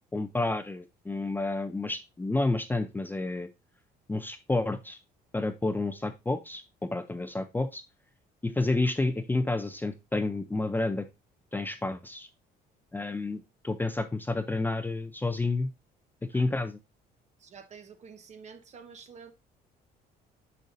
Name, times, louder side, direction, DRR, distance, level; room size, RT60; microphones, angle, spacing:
voice 1, 0.1-3.5 4.1-5.0 5.3-7.8 8.4-11.1 11.5-12.3 12.9-15.7 16.3-16.8, left 2 dB, 10° left, 0.5 m, -30 dB
voice 2, 17.4-19.3, right 6 dB, 45° right, 1.1 m, -49 dB
6.5 x 6.5 x 2.6 m
cardioid pair, 110°, 17 cm